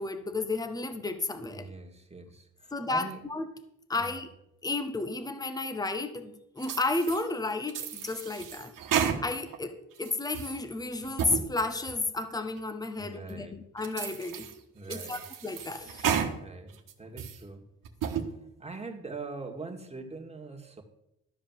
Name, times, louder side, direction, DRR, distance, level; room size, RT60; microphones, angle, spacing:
voice 1, 0.0-1.7 2.7-3.5 3.9-4.3 4.6-8.7 9.2-14.5 14.9-16.1, left 3 dB, 10° left, 9 dB, 1.1 m, -32 dB
voice 2, 1.5-3.3 3.9-4.2 13.0-13.6 14.7-15.3 16.4-17.7 18.2-20.8, right 3 dB, 20° right, 2 dB, 2.1 m, -43 dB
sound 1, 6.6-7.2 7.7-9.6 10.0-10.6 11.0-11.4 11.9-12.0 12.6-12.7 13.3-13.4 13.8-14.5 14.9-16.3 16.7-17.4 17.8-18.3, right 8 dB, 70° right, 1.4 m, -32 dB
13.0 x 4.9 x 7.4 m, 0.85 s
supercardioid pair, 65°, 34 cm